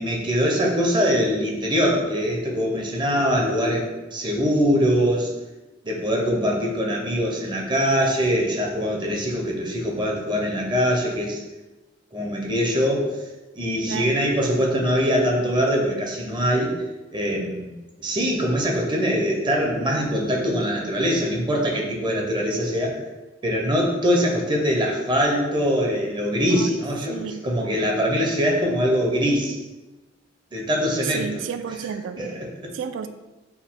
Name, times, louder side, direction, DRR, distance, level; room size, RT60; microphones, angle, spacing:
voice 1, 0.0-5.3 5.8-11.4 12.1-13.2 13.5-16.7 17.1-17.7 18.0-23.0 23.4-29.6 30.5-31.4 32.2-32.7, equal, 25° right, 0.6 m, -23 dB
voice 2, 13.9-14.2 26.5-26.8 27.1-27.5 31.0-32.2 32.7-33.1, right 7 dB, 90° right, 0.3 m, -31 dB
4.5 x 2.1 x 3.6 m
head